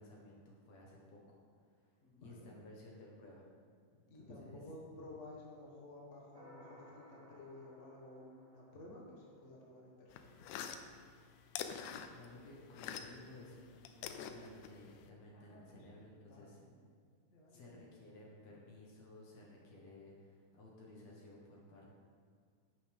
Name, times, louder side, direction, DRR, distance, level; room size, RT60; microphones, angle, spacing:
voice 1, 0.0-1.4 1.7-3.4 3.9-4.6 12.1-16.6 17.5-21.9, left 1 dB, 60° left, -3 dB, 2.4 m, -56 dB
voice 2, 2.0-2.6 4.1-10.4 15.3-16.7 17.3-17.8, left 1 dB, 35° left, -4 dB, 1.2 m, -54 dB
sound 1, 6.3-9.8, left 1 dB, 65° right, 0.8 m, -61 dB
sound 2, 10.1-13.3 13.6-15.1, left 8 dB, 80° left, 2.1 m, -45 dB
10.5 x 9.2 x 3.5 m, 2.1 s
omnidirectional pair, 3.9 m